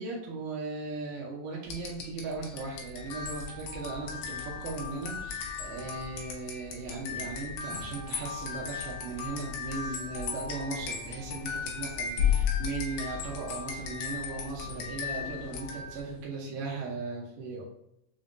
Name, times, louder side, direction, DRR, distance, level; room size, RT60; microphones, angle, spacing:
voice 1, 0.0-17.7, right 3 dB, 85° right, -3 dB, 2.5 m, -38 dB
sound 1, 1.7-16.1, left 7 dB, 80° left, 1.9 m, -35 dB
5.9 x 2.2 x 2.5 m, 0.81 s
omnidirectional pair, 4.4 m